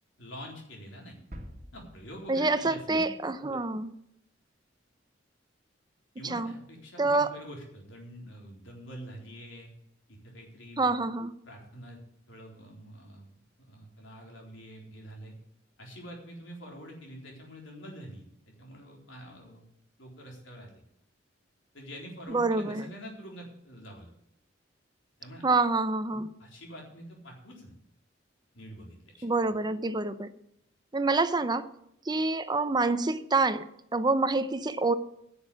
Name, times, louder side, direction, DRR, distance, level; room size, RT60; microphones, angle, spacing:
voice 1, 0.2-1.1 1.7-3.0 6.2-9.7 10.1-10.9 11.5-12.0 12.3-13.4 13.7-15.3 15.8-18.3 18.6-19.7 20.0-20.8 21.7-24.1 25.2-25.4 26.4-27.7 28.5-29.3, equal, 85° left, 0 dB, 4.0 m, -46 dB
sound 1, 1.3-3.2 3.6-3.7, equal, 40° right, 1.7 m, -48 dB
voice 2, 2.3-3.9 6.2-6.5 7.0-7.3 10.8-11.3 22.3-22.9 25.4-26.3 29.2-30.3 30.9-31.7 32.1-33.7 33.9-34.9, right 3 dB, 20° right, 11 dB, 0.7 m, -27 dB
10.5 x 7.1 x 8.6 m, 0.76 s
head